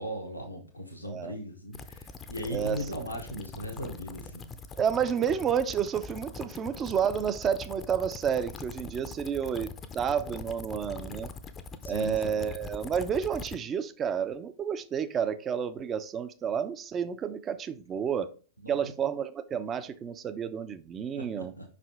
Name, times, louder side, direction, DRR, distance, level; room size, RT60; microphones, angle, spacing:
voice 1, 0.0-4.5 11.8-12.5 18.6-18.8 21.2-21.6, equal, 85° left, 1.0 m, -38 dB
voice 2, 1.0-1.4 2.5-2.9 4.8-11.3 11.9-18.3 18.7-21.6, right 7 dB, 25° right, 0.6 m, -30 dB
sound 1, 1.7-13.6, left 4 dB, 25° left, 0.6 m, -43 dB
5.5 x 5.0 x 3.5 m
figure-of-eight pair, 90°, 0 cm